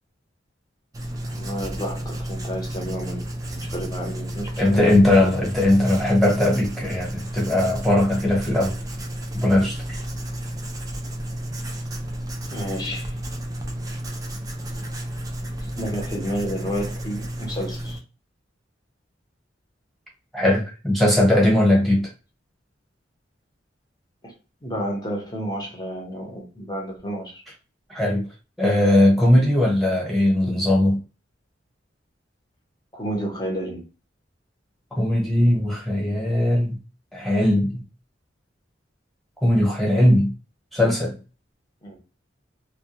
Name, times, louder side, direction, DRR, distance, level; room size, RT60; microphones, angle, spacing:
Writing, 0.9-18.0, right 1 dB, 20° right, 0.4 m, -32 dB
voice 1, 1.2-5.0 12.5-13.1 15.8-18.0 24.2-24.3 24.6-27.4 32.9-33.8 41.8-42.0, equal, 20° left, 0.8 m, -31 dB
voice 2, 4.6-8.8 9.3-10.0 20.3-22.1 27.9-28.3 28.6-31.0 35.0-36.8 37.1-37.8 39.4-40.3 40.7-41.1, left 1 dB, ahead, 1.0 m, -19 dB
2.2 x 2.2 x 2.8 m
head